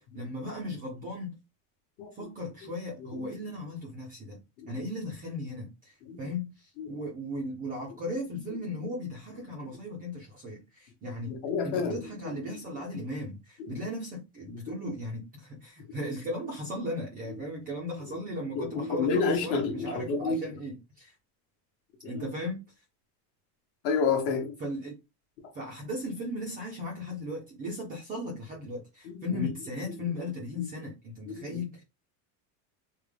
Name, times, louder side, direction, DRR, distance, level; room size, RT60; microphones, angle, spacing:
voice 1, 0.0-1.3 2.1-4.4 4.7-11.4 11.6-21.1 22.0-22.6 24.6-24.9 25.5-31.8, left 1 dB, 20° right, 0.3 m, -37 dB
voice 2, 11.3-12.0 13.6-13.7 18.6-20.4 22.0-22.2 23.8-24.5 29.3-29.5 30.6-30.7 31.3-31.6, left 5 dB, 50° left, 0.9 m, -29 dB
3.5 x 2.1 x 3.1 m
cardioid pair, 165°, 46 cm